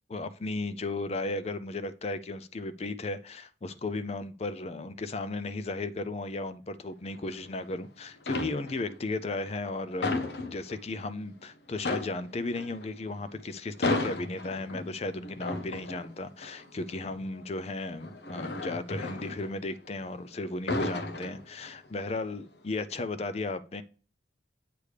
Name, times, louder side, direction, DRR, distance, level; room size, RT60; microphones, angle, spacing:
voice 1, 0.1-10.2 10.4-23.8, left 2 dB, 35° left, 0.4 m, -35 dB
sound 1, 7.1-7.8 8.2-9.0 9.4-11.1 11.4-11.5 11.8-20.1 20.4-21.9 22.3-22.6, left 2 dB, 65° left, 1.0 m, -35 dB
8.4 x 3.3 x 6.5 m
head